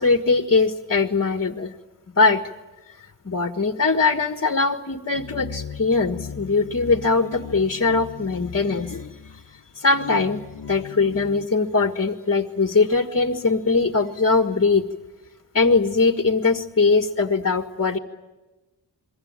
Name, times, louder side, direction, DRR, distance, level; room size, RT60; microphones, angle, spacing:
voice 1, 0.0-1.7 2.2-2.4 3.0-9.4 9.7-10.4 10.7-14.9 15.5-18.0, left 4 dB, 35° left, 8 dB, 1.6 m, -21 dB
sound 1, 5.2-11.5, left 7 dB, 85° left, 1.1 m, -37 dB
28.0 x 23.0 x 9.0 m, 1.2 s
wide cardioid pair, 85°, 42 cm